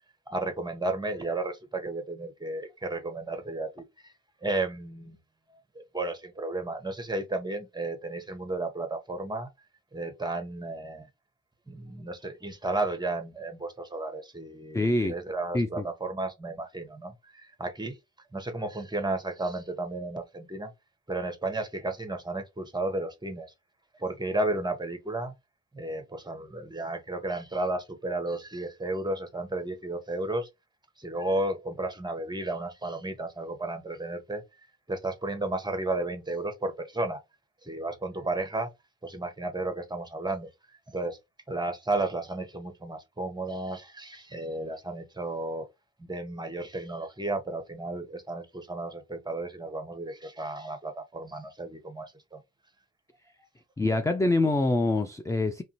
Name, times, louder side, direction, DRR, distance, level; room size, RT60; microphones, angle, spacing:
voice 1, 0.3-4.1 4.4-5.2 5.7-9.5 9.9-11.1 11.7-18.0 18.3-20.7 21.1-23.5 23.9-25.3 25.7-30.5 31.0-34.4 34.9-37.2 37.6-38.7 39.0-40.5 40.9-41.2 41.5-45.7 46.0-52.4, right 2 dB, 10° right, 0.9 m, -33 dB
voice 2, 14.7-15.1 15.5-15.9 53.8-55.6, left 2 dB, 10° left, 0.3 m, -25 dB
2.6 x 2.5 x 2.9 m
hypercardioid pair, 40°, 39 cm